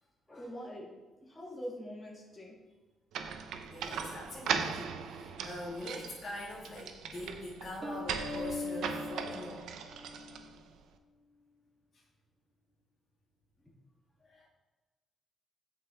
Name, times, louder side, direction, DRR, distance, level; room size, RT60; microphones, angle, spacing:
voice 1, 0.3-0.9 1.2-2.5, equal, 10° left, -5 dB, 1.4 m, -43 dB
sound 1, 3.1-10.8, right 6 dB, 80° right, 0.5 m, -39 dB
voice 2, 3.4-9.7 11.9-12.0 14.2-14.5, left 1 dB, 35° left, -6 dB, 1.5 m, -44 dB
sound 2, 7.8-10.5, left 3 dB, 30° right, 1.1 m, -40 dB
8.0 x 4.4 x 3.4 m, 1.2 s
cardioid pair, 90°, 0 cm